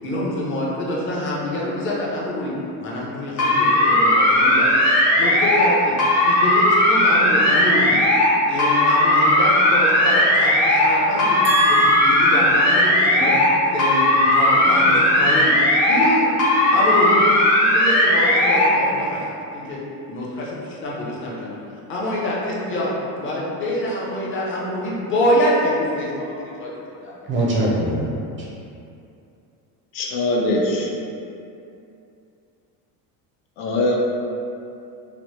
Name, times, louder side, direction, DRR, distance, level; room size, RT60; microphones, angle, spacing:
voice 1, 0.0-2.5 2.8-4.9 5.2-6.0 6.2-8.0 8.5-11.4 11.7-13.4 13.7-15.5 15.9-16.3 16.7-19.3 19.5-19.8 20.1-21.6 21.9-26.3 26.6-27.2, left 1 dB, 30° left, -5 dB, 0.5 m, -25 dB
sound 1, 3.4-5.7 6.0-8.3 8.6-10.9 11.2-13.5 13.8-16.1 16.4-18.7, left 1 dB, 50° left, 0.8 m, -17 dB
voice 2, 11.4-12.6 27.3-28.5, right 2 dB, 30° right, -5 dB, 0.4 m, -23 dB
voice 3, 29.9-30.9 33.6-34.0, left 1 dB, 85° left, -1 dB, 0.6 m, -21 dB
2.9 x 2.0 x 3.1 m, 2.6 s
cardioid pair, 135°, 42 cm